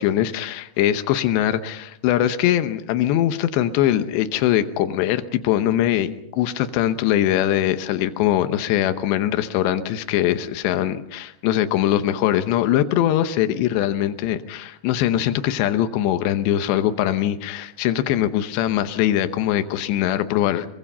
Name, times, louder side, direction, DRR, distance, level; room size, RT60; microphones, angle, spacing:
voice 1, 0.0-20.7, left 12 dB, 85° left, 10 dB, 3.2 m, -22 dB
24.5 x 23.0 x 5.6 m, 0.75 s
omnidirectional pair, 4.9 m